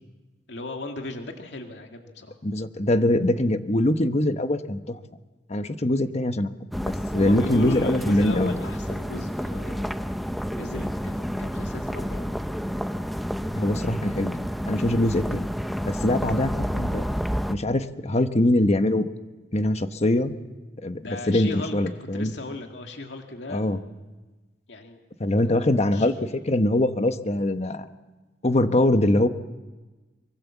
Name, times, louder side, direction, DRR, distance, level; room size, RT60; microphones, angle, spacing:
voice 1, 0.5-2.4 7.1-10.2 10.5-12.4 21.0-23.6 24.7-25.0 25.9-26.1, left 2 dB, 85° left, 3 dB, 2.2 m, -36 dB
voice 2, 2.4-5.0 5.5-6.5 6.8-8.5 13.5-14.4 14.7-15.5 15.8-17.0 17.5-19.1 19.5-20.3 20.8-21.0 21.3-22.3 23.5-23.8 25.2-27.9 28.4-29.3, left 1 dB, 40° left, 9 dB, 1.2 m, -23 dB
sound 1, 6.7-17.5, equal, ahead, 0.7 m, -30 dB
24.0 x 23.5 x 7.2 m, 1.2 s
head